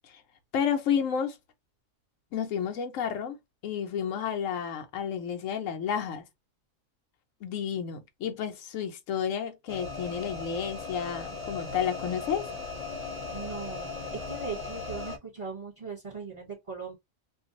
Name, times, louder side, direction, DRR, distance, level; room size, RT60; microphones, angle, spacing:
voice 1, 0.5-1.3 2.3-3.4 3.6-6.2 7.4-12.5, left 8 dB, 75° left, 1.1 m, -31 dB
sound 1, 9.7-15.2, left 4 dB, 30° left, 0.9 m, -38 dB
voice 2, 13.3-14.0 14.3-16.9, right 5 dB, 25° right, 1.1 m, -39 dB
2.6 x 2.3 x 3.8 m
omnidirectional pair, 1.4 m